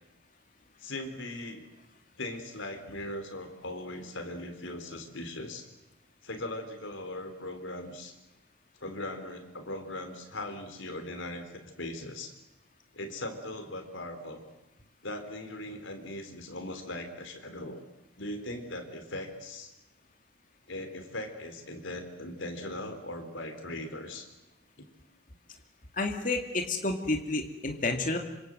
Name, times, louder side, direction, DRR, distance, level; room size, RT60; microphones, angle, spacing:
voice 1, 0.8-1.7 2.2-5.7 6.2-8.1 8.8-12.3 12.9-14.4 15.0-17.8 18.2-19.7 20.7-24.3 24.8-24.9, left 1 dB, 75° left, 6 dB, 4.2 m, -39 dB
voice 2, 25.9-28.2, left 2 dB, 40° left, 3 dB, 2.4 m, -30 dB
26.5 x 26.0 x 7.9 m, 0.94 s
head